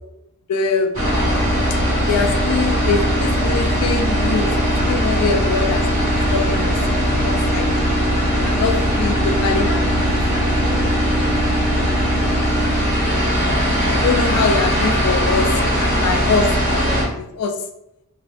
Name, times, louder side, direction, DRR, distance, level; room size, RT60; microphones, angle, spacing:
voice 1, 0.5-1.0 2.1-7.7 8.4-10.1 13.9-15.5 15.8-16.9 17.2-17.5, left 4 dB, 80° left, 6 dB, 0.4 m, -23 dB
sound 1, 0.9-17.0, equal, 35° right, 1.2 m, -19 dB
voice 2, 9.6-12.6 14.7-14.9 15.3-16.0 16.6-17.0, equal, ahead, -10 dB, 1.2 m, -36 dB
2.4 x 2.3 x 3.3 m, 0.81 s
head